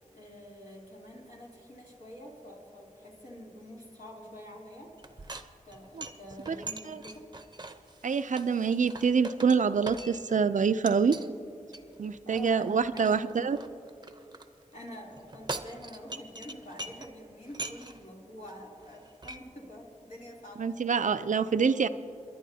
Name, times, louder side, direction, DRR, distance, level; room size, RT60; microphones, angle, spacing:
voice 1, 0.1-4.9 5.6-7.3 12.2-13.4 14.7-21.1, equal, 70° left, -4 dB, 3.0 m, -47 dB
sound 1, 5.0-10.4 10.9-11.3 11.7-14.5 15.1-17.1 17.5-18.1 18.5-18.6 18.8-19.4, right 2 dB, 30° right, 0.7 m, -43 dB
voice 2, 8.0-11.2 12.0-13.6 20.6-21.9, right 6 dB, 70° right, 12 dB, 0.4 m, -26 dB
29.0 x 11.0 x 2.8 m, 2.6 s
wide cardioid pair, 65°, 13 cm